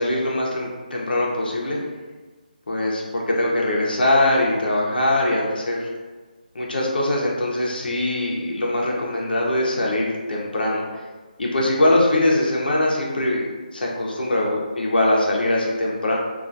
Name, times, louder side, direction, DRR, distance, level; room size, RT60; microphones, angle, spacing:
voice 1, 0.0-1.8 2.7-5.9 6.5-10.8 11.4-13.4 13.7-16.2, left 1 dB, 75° left, -3 dB, 0.6 m, -22 dB
2.3 x 2.2 x 2.5 m, 1.3 s
hypercardioid pair, 180°, 5 cm